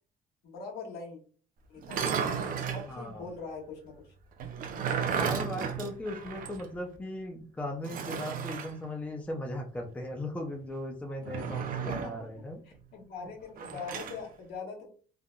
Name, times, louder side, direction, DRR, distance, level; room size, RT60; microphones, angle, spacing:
voice 1, 0.4-1.2 1.7-2.3 2.7-4.1 11.8-12.1 12.6-14.9, left 5 dB, 70° left, -1 dB, 1.3 m, -42 dB
sound 1, 1.8-2.9 4.4-6.7 7.0-7.1 7.8-8.7 11.2-12.2 13.6-14.2, right 7 dB, 55° right, 0.5 m, -33 dB
voice 2, 2.9-3.3 5.0-12.6, left 1 dB, 10° left, 2 dB, 0.5 m, -38 dB
3.3 x 2.5 x 2.2 m, 0.41 s
cardioid pair, 110°, 17 cm